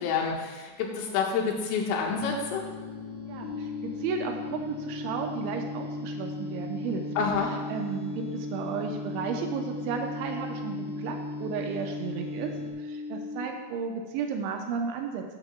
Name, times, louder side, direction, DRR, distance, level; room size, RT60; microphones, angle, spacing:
voice 1, 0.0-2.7 7.2-7.5, left 5 dB, 80° left, 0 dB, 3.8 m, -28 dB
sound 1, 2.1-12.7, left 1 dB, 30° left, 2.4 m, -41 dB
voice 2, 3.3-7.0 7.5-12.5 12.8-15.2, right 6 dB, 85° right, 3 dB, 2.7 m, -34 dB
sound 2, 3.4-13.4, left 3 dB, 55° left, 3.0 m, -37 dB
12.5 x 12.5 x 2.3 m, 1.3 s
omnidirectional pair, 6.0 m